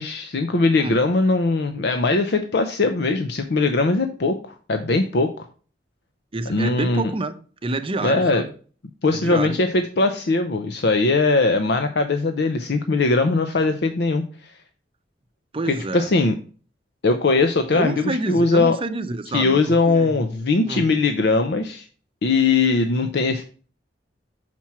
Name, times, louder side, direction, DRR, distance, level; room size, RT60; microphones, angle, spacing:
voice 1, 0.0-5.4 6.5-7.0 8.0-8.4 9.0-14.5 15.7-16.4 17.0-18.8 19.3-21.8 22.2-23.4, left 3 dB, 65° left, 0.6 m, -20 dB
voice 2, 6.3-7.4 7.6-8.5 9.1-9.6 15.5-16.1 17.7-20.2 20.6-20.9, right 2 dB, 30° right, 0.7 m, -28 dB
5.9 x 4.4 x 5.8 m
head